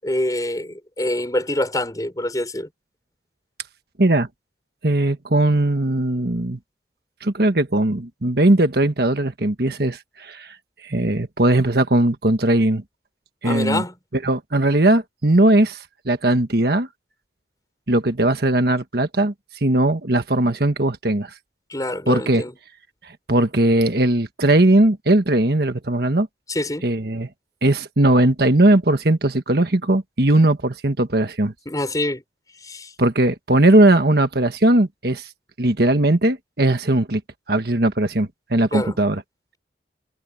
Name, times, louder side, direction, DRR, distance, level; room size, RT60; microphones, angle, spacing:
voice 1, 0.0-2.7 13.4-13.9 21.7-22.6 26.5-26.9 31.7-32.2 32.6-32.9 38.7-39.0, left 1 dB, 20° left, 5.6 m, -25 dB
voice 2, 4.8-6.6 7.2-10.5 10.8-12.8 13.4-13.8 14.2-16.9 17.9-19.3 19.6-21.3 22.1-22.4 23.3-26.3 26.8-27.3 27.6-31.5 33.0-35.3 35.6-37.2 37.5-39.2, right 1 dB, 60° right, 1.5 m, -19 dB
head